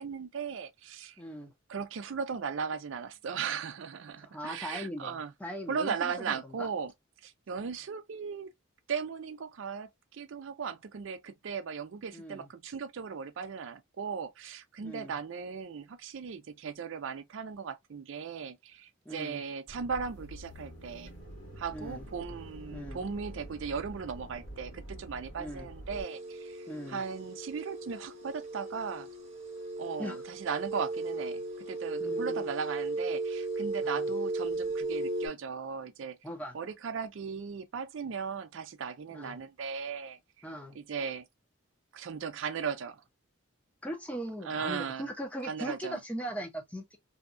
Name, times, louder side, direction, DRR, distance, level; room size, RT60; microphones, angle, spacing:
voice 1, 0.0-1.2 1.7-5.3 5.7-6.9 7.2-8.5 8.9-21.1 21.6-29.1 29.8-36.2 36.5-40.4 40.7-41.3 41.9-43.0 44.4-45.1 45.4-46.0, right 6 dB, 65° right, 0.4 m, -37 dB
voice 2, 1.2-1.5 4.2-6.7 12.1-12.5 14.8-15.1 19.1-19.4 21.7-22.0 22.7-23.0 25.4-25.7 26.7-27.0 30.0-30.2 32.0-32.5 33.8-34.1 36.2-36.5 39.1-39.4 40.4-40.8 43.8-47.0, equal, 5° left, 0.6 m, -40 dB
sound 1, 19.7-26.0, right 1 dB, 70° left, 1.3 m, -46 dB
sound 2, 25.9-35.3, right 2 dB, 35° right, 0.9 m, -36 dB
2.7 x 2.2 x 2.5 m
head